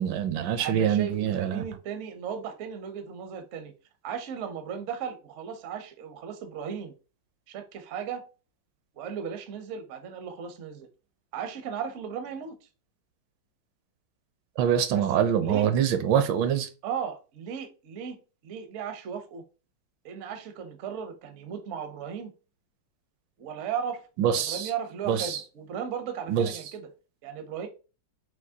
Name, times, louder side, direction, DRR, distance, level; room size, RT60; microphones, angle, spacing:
voice 1, 0.0-1.6 14.6-16.7 24.2-24.7 25.0-25.4 26.3-26.5, right 9 dB, 80° right, 1.3 m, -25 dB
voice 2, 0.6-3.7 4.0-6.9 7.5-8.3 9.0-10.9 11.3-12.5 14.9-15.0 15.4-15.7 16.8-18.2 18.4-19.4 20.0-22.3 23.4-26.9 27.2-27.7, right 7 dB, 60° right, 0.7 m, -36 dB
5.8 x 2.7 x 2.7 m
omnidirectional pair, 2.1 m